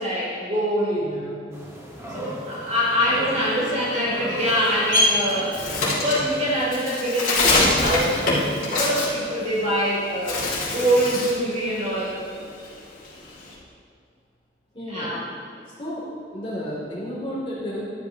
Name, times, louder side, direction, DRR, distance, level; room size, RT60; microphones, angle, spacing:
voice 1, 0.0-1.1 2.1-10.4 10.7-12.2 14.9-15.2, equal, 45° right, -7 dB, 2.8 m, -24 dB
voice 2, 1.0-1.4 14.7-15.2 15.8-17.8, equal, 30° left, -7 dB, 2.5 m, -32 dB
sound 1, 1.5-6.7, equal, 15° right, 1.5 m, -37 dB
Bird, 4.4-9.9 10.2-11.5 11.8-13.5, left 2 dB, 50° left, 2.6 m, -24 dB
13.0 x 10.5 x 2.9 m, 2.3 s
head